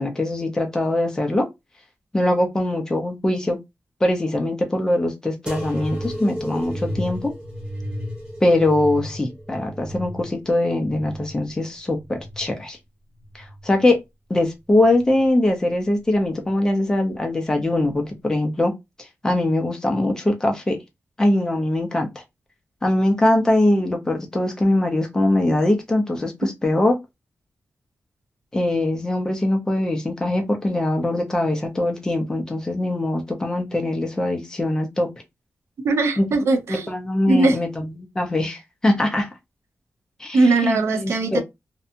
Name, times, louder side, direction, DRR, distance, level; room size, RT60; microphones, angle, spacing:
voice 1, 0.0-1.5 2.1-3.6 4.0-7.3 8.4-12.8 13.3-14.0 14.3-18.7 19.2-20.8 21.2-22.1 22.8-26.3 26.6-27.0 28.5-35.1 36.2-36.3 36.7-37.8 38.1-39.3 40.2-41.4, left 1 dB, 15° left, 0.6 m, -22 dB
sound 1, 5.5-12.7 13.2-14.0 14.7-15.3 16.2-16.3, equal, 20° right, 1.2 m, -33 dB
voice 2, 35.8-36.9 37.3-37.6 40.3-41.4, right 3 dB, 75° right, 0.6 m, -19 dB
2.7 x 2.2 x 2.6 m
wide cardioid pair, 180°, 5 cm